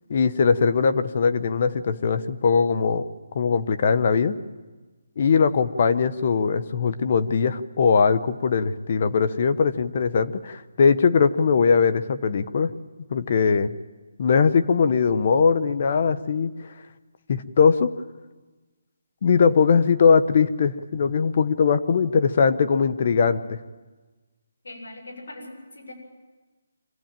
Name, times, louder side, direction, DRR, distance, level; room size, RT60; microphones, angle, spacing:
voice 1, 0.1-3.0 3.3-4.4 5.2-12.7 13.1-13.7 14.2-16.5 17.3-17.9 19.2-23.6, left 5 dB, 40° left, 12 dB, 1.1 m, -20 dB
voice 2, 24.6-25.9, left 2 dB, 80° left, 1 dB, 7.0 m, -40 dB
26.0 x 15.5 x 9.1 m, 1.3 s
hypercardioid pair, 165°, 0 cm